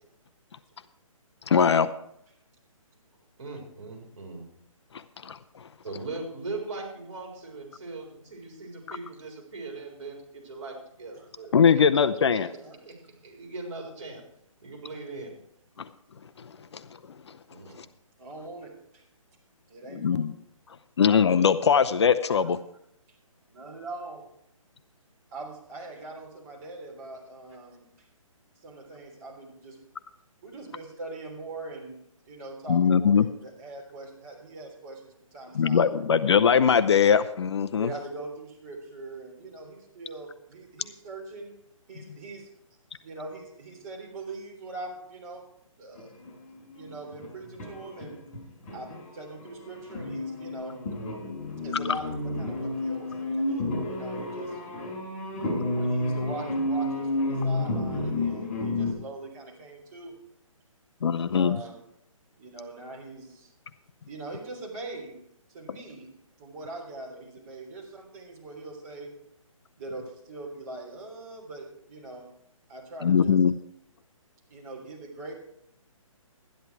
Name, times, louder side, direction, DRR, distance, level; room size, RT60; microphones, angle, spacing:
voice 1, 1.5-1.9 5.2-5.4 8.9-9.0 11.5-12.5 15.8-15.9 19.9-20.3 21.0-22.6 32.7-33.3 35.5-37.9 61.0-61.6 73.0-73.5, left 7 dB, 50° left, 12 dB, 0.6 m, -21 dB
voice 2, 3.4-4.5 5.8-11.8 12.3-12.4 12.8-13.0 13.2-14.2 14.6-15.3 17.5-17.8, right 3 dB, 55° right, 1 dB, 4.3 m, -39 dB
voice 3, 12.4-12.8 18.2-19.0 19.7-20.3 23.5-24.2 25.3-27.9 28.6-29.8 30.4-35.9 37.7-41.5 41.9-42.5 43.0-45.5 45.8-46.2 46.7-48.2 48.7-50.8 51.6-54.6 55.7-60.2 61.1-61.8 62.4-63.5 64.1-65.2 65.5-66.1 66.4-69.1 69.8-72.3 72.7-73.4 74.5-75.3, right 2 dB, 30° right, -2 dB, 3.5 m, -42 dB
sound 1, 46.0-49.1 49.4-58.9, left 2 dB, 25° left, 5.5 m, -31 dB
12.5 x 10.5 x 4.6 m, 0.72 s
hypercardioid pair, 160°, 18 cm